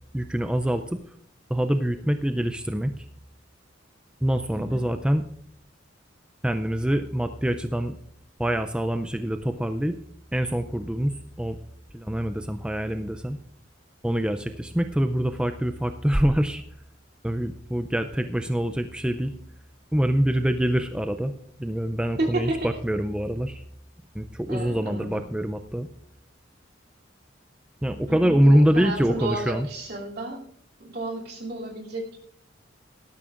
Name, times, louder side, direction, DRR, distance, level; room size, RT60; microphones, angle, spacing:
voice 1, 0.1-1.0 1.5-2.9 4.2-5.2 6.4-8.0 8.4-10.0 10.3-11.6 11.9-13.4 14.0-16.6 17.2-19.3 19.9-21.3 21.6-23.6 24.1-25.9 27.8-29.7, equal, 5° right, 8 dB, 0.4 m, -25 dB
voice 2, 22.2-22.7 24.5-25.2 28.1-30.4 30.8-32.2, right 2 dB, 55° right, -2 dB, 2.9 m, -32 dB
18.0 x 12.5 x 2.5 m, 0.65 s
head